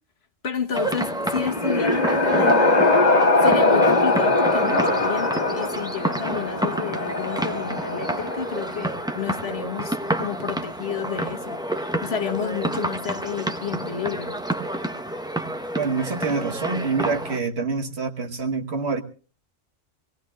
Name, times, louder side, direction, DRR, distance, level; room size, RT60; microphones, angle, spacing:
voice 1, 0.4-2.9 3.4-14.4, left 7 dB, 55° left, 1.5 m, -30 dB
sound 1, 0.7-17.4, right 1 dB, 5° right, 0.7 m, -29 dB
sound 2, 1.2-9.0, left 2 dB, 35° left, 1.8 m, -21 dB
voice 2, 15.7-19.0, right 4 dB, 60° right, 1.5 m, -26 dB
25.0 x 18.0 x 2.4 m
omnidirectional pair, 1.3 m